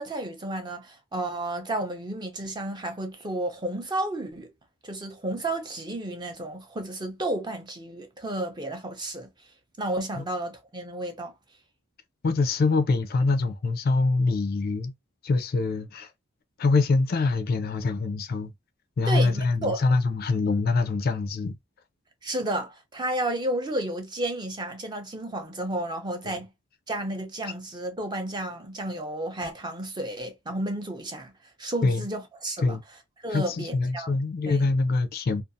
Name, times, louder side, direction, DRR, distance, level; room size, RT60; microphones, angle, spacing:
voice 1, 0.0-4.5 4.8-9.3 9.8-11.3 19.1-19.9 22.2-26.5 26.9-31.3 31.6-32.8 33.2-34.2 34.5-34.7, right 1 dB, 20° right, 0.5 m, -32 dB
voice 2, 12.2-14.9 15.2-16.1 16.6-18.5 19.0-21.5 26.2-26.4 27.4-27.5 31.8-32.0 32.6-32.8 33.3-35.4, left 3 dB, 45° left, 0.3 m, -24 dB
2.5 x 2.3 x 2.5 m
head